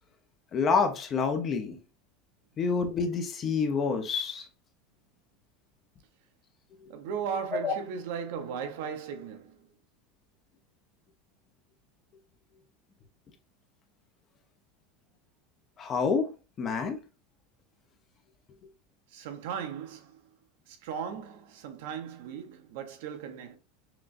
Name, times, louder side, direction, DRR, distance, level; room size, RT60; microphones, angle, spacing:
voice 1, 0.5-1.8 2.6-4.5 7.6-7.7 15.8-16.3 16.6-17.0, left 5 dB, 25° left, 0.6 m, -27 dB
voice 2, 6.9-9.7 19.1-20.3 20.7-23.6, right 7 dB, 70° right, 0.8 m, -37 dB
5.8 x 2.2 x 2.5 m
supercardioid pair, 160°, 0 cm